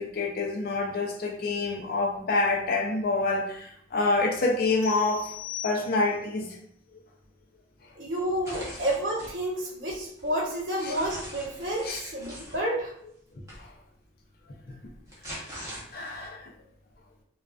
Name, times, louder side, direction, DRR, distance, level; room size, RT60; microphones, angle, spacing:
voice 1, 0.0-5.3 5.6-6.5 10.8-10.9 11.8-12.0 13.6-13.7 15.9-16.5, left 3 dB, 50° left, 1 dB, 0.4 m, -27 dB
sound 1, 4.8-6.3, left 13 dB, 30° left, 0.8 m, -40 dB
voice 2, 7.9-12.9, right 1 dB, 70° right, -5 dB, 0.8 m, -30 dB
sound 2, 8.4-9.3 9.9-12.6 13.5-13.6 14.8-16.3, equal, 15° right, 0.7 m, -42 dB
2.3 x 2.3 x 2.3 m, 0.68 s
head